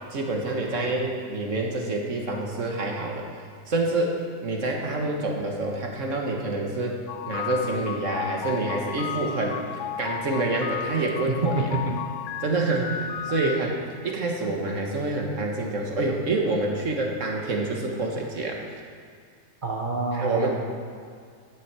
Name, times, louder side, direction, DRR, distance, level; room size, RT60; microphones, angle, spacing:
voice 1, 0.1-3.3 3.7-9.6 10.0-11.6 12.4-13.8 14.0-18.6 20.1-20.5, right 2 dB, 50° right, 0 dB, 1.6 m, -27 dB
sound 1, 7.1-13.6, left 9 dB, 70° left, 0.7 m, -34 dB
voice 2, 11.3-11.9 13.4-13.5 19.6-20.5, right 3 dB, 30° right, 0 dB, 1.2 m, -27 dB
11.0 x 8.1 x 6.1 m, 2.2 s
omnidirectional pair, 1.8 m